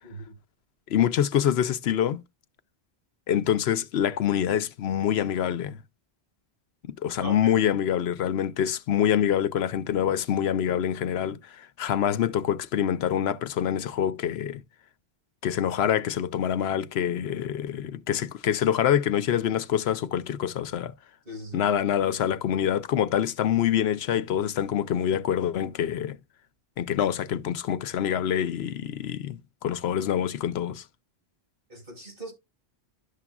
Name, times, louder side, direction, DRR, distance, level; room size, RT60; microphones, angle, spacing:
voice 1, 0.0-0.3 7.2-7.6 21.3-21.6 31.7-32.3, right 1 dB, 60° right, 5.7 m, -39 dB
voice 2, 0.9-2.2 3.3-5.8 6.8-14.6 15.4-20.9 21.5-26.2 26.8-30.8, left 9 dB, 80° left, 0.9 m, -26 dB
11.5 x 7.0 x 2.3 m
omnidirectional pair, 1.0 m